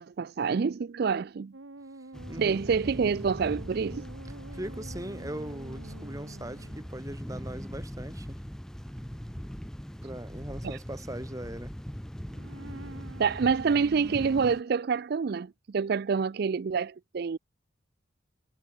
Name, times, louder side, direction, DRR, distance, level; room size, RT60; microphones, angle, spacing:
voice 1, 0.0-1.5 2.4-4.0 10.6-10.8 13.2-17.4, right 5 dB, 55° right, 0.4 m, -27 dB
sound 1, 1.5-7.0 12.2-14.5, right 2 dB, 90° right, 1.5 m, -47 dB
sound 2, 2.1-14.6, equal, 5° left, 0.5 m, -41 dB
voice 2, 2.3-2.6 4.5-8.4 10.0-11.7, right 1 dB, 15° right, 2.5 m, -40 dB
head